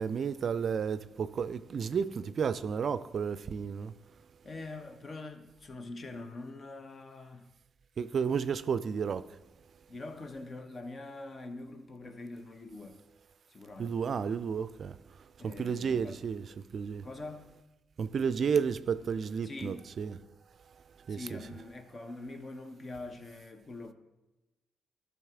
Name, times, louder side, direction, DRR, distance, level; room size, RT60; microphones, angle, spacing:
voice 1, 0.0-3.9 8.0-9.2 13.8-14.9 15.4-16.4 16.7-17.0 18.0-20.2 21.1-21.4, right 6 dB, 55° right, 14 dB, 0.3 m, -32 dB
voice 2, 4.4-7.5 9.9-13.0 13.5-13.9 15.4-16.2 17.0-17.6 19.4-19.9 21.1-23.9, left 2 dB, 45° left, 8 dB, 1.0 m, -44 dB
12.0 x 5.9 x 3.6 m, 1.1 s
hypercardioid pair, 45°, 0 cm